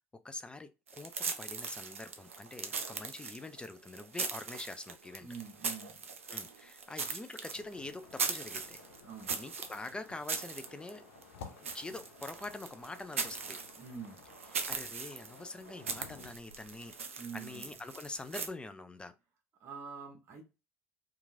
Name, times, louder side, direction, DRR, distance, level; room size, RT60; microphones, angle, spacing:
voice 1, 0.1-5.3 6.3-8.8 9.3-11.1 11.6-13.6 14.5-19.1, left 2 dB, 15° left, 0.3 m, -45 dB
sound 1, 0.9-18.5, right 5 dB, 85° right, 0.4 m, -40 dB
voice 2, 5.2-6.0 9.0-9.4 13.8-14.2 17.2-17.7 19.6-20.4, right 6 dB, 40° right, 1.0 m, -45 dB
sound 2, 7.5-16.3, left 5 dB, 70° left, 0.5 m, -55 dB
2.9 x 2.4 x 2.5 m
figure-of-eight pair, 65°, 7 cm